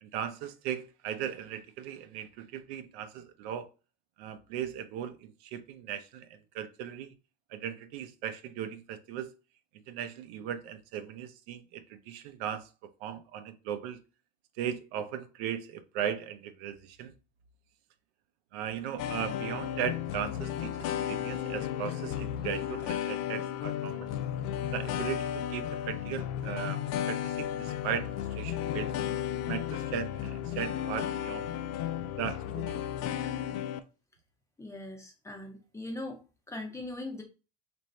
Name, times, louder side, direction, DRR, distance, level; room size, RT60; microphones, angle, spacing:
voice 1, 0.0-3.7 4.2-6.3 6.5-7.1 7.5-9.3 9.9-12.7 13.0-14.0 14.6-17.1 18.5-24.1 24.7-26.8 27.1-28.9 29.5-31.5 32.1-32.8, right 9 dB, 85° right, 0.6 m, -37 dB
sound 1, 19.0-33.8, left 10 dB, 65° left, 0.4 m, -34 dB
voice 2, 34.6-36.2 36.5-37.2, left 2 dB, 10° left, 0.5 m, -40 dB
3.1 x 2.6 x 4.2 m
cardioid pair, 165°, 32 cm